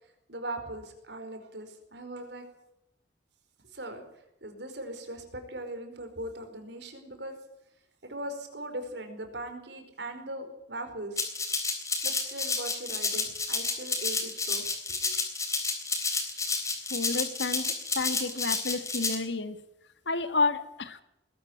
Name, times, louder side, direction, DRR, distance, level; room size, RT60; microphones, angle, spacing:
voice 1, 0.3-2.4 3.7-4.0 4.4-7.4 8.0-11.2 12.0-14.7 15.0-15.1, right 1 dB, 70° right, 6 dB, 4.9 m, -39 dB
Rattle (instrument), 11.2-19.2, left 4 dB, 15° left, 3.5 m, -30 dB
voice 2, 16.9-19.6 20.1-21.0, left 3 dB, 75° left, 11 dB, 1.9 m, -30 dB
21.0 x 13.0 x 9.6 m, 0.85 s
head